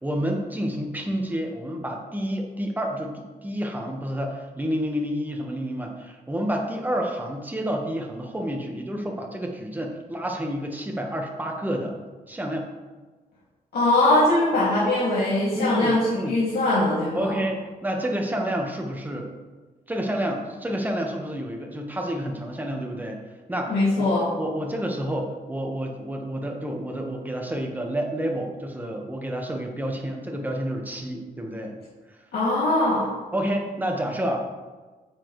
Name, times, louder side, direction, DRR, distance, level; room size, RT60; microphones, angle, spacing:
voice 1, 0.0-12.0 12.3-12.7 15.5-16.4 17.1-19.3 19.9-24.1 24.4-31.7 33.3-34.5, equal, 10° right, 1 dB, 1.3 m, -29 dB
voice 2, 13.7-17.3 23.7-24.3 32.3-33.0, left 2 dB, 80° left, -9 dB, 2.5 m, -21 dB
9.6 x 7.1 x 3.2 m, 1.3 s
cardioid pair, 95°, 16 cm